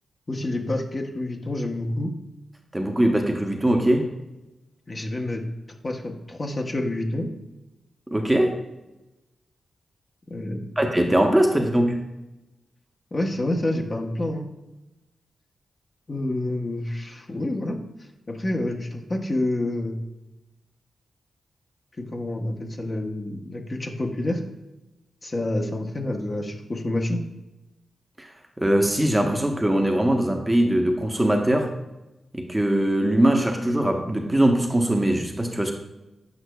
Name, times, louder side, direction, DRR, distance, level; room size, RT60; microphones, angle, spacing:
voice 1, 0.3-2.1 4.9-5.4 5.8-7.3 10.3-10.8 11.3-11.4 13.1-14.5 16.1-17.8 18.3-20.0 22.0-24.4 25.2-27.2, left 1 dB, 35° left, 2 dB, 0.8 m, -28 dB
voice 2, 2.7-4.1 8.1-8.6 10.8-12.0 28.2-28.3 28.6-31.7 32.3-35.7, right 1 dB, 15° right, 3 dB, 0.8 m, -21 dB
8.0 x 5.5 x 2.3 m, 0.98 s
cardioid pair, 65°, 0 cm